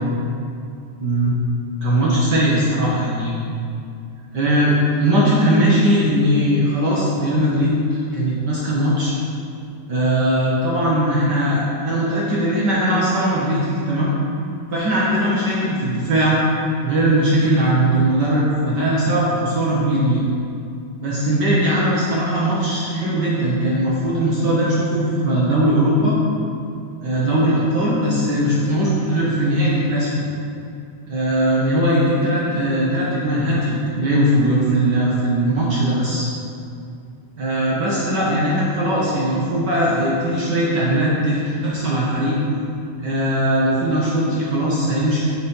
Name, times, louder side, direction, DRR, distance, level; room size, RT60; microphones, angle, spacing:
voice 1, 1.0-1.4 1.8-3.4 4.3-9.1 9.9-14.1 14.7-16.4 16.8-20.3 21.0-26.2 27.0-30.1 31.1-36.3 37.4-42.4 43.0-45.2, right 1 dB, 60° right, -7 dB, 1.1 m, -19 dB
7.0 x 6.3 x 5.4 m, 2.5 s
omnidirectional pair, 3.6 m